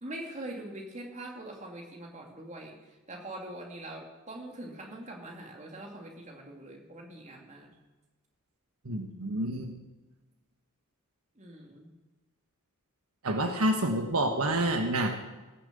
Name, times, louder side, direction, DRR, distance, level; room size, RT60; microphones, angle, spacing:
voice 1, 0.0-2.8 3.1-7.7 11.4-11.9, right 1 dB, 30° right, 1 dB, 2.5 m, -43 dB
voice 2, 8.8-9.7 13.2-15.1, right 1 dB, 80° right, 4 dB, 1.4 m, -28 dB
17.0 x 7.6 x 6.8 m, 1.1 s
head